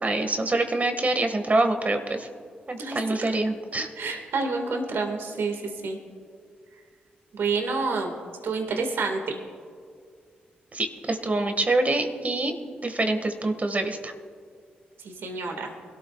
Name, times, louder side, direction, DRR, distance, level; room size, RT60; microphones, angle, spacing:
voice 1, 0.0-2.3 2.7-3.9 10.7-12.6 12.8-14.1, right 2 dB, 40° right, 6 dB, 1.8 m, -25 dB
voice 2, 2.8-3.2 4.0-6.0 7.3-8.2 8.4-9.4 15.0-15.7, right 4 dB, 70° right, 3 dB, 1.9 m, -29 dB
22.5 x 13.0 x 2.4 m, 2.1 s
hypercardioid pair, 40°, 4 cm